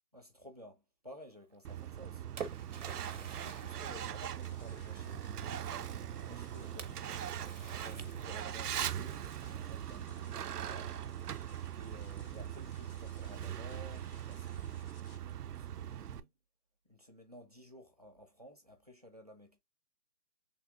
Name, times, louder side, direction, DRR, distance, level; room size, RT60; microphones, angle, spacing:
voice 1, 0.1-2.3 3.2-5.7 6.2-7.0 7.8-11.0 11.7-16.3 16.8-19.6, equal, 30° right, 0.4 m, -54 dB
Truck, 1.6-16.2, right 10 dB, 90° right, 0.6 m, -41 dB
Splash splatter, 1.8-5.0 6.8-8.7, right 6 dB, 55° right, 0.8 m, -48 dB
sound 1, 3.9-15.2, left 5 dB, 70° left, 0.7 m, -61 dB
3.4 x 3.2 x 2.8 m
hypercardioid pair, 160°, 45 cm